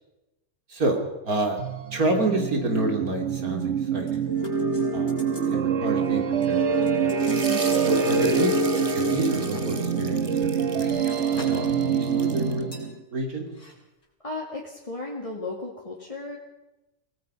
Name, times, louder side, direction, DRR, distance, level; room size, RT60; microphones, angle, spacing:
voice 1, 0.7-1.6 1.9-3.6 3.9-4.2 4.9-5.2 5.4-6.6 7.0-7.3 7.8-10.4 10.7-13.5, right 2 dB, 70° right, 3 dB, 3.5 m, -28 dB
sound 1, 1.6-13.0, right 6 dB, 50° right, 1.7 m, -25 dB
sound 2, 4.1-5.5 5.9-6.1 6.4-8.2 8.8-9.7 10.3-11.7 12.0-12.2 12.7-12.9 13.5-13.7 14.0-14.1, left 1 dB, 85° left, 6.1 m, -46 dB
sound 3, 7.1-12.6, right 3 dB, 25° right, 1.4 m, -39 dB
voice 2, 7.5-8.0 14.2-16.4, left 2 dB, 20° left, -3 dB, 2.6 m, -35 dB
24.0 x 19.0 x 5.7 m, 1.0 s
omnidirectional pair, 1.6 m